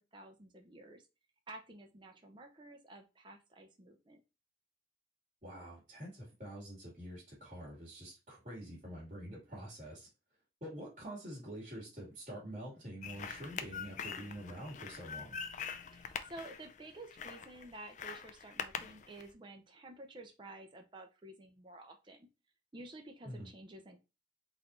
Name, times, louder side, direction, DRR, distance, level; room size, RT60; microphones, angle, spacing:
voice 1, 0.1-1.1 1.5-4.2 15.8-22.3 22.7-24.0, right 2 dB, 25° right, 3 dB, 0.6 m, -52 dB
voice 2, 5.4-10.1 10.6-15.4 23.2-23.5, right 1 dB, 40° right, -5 dB, 2.1 m, -46 dB
sound 1, 13.0-19.3, left 7 dB, 40° left, 0.4 m, -44 dB
4.1 x 2.6 x 4.2 m, 0.28 s
head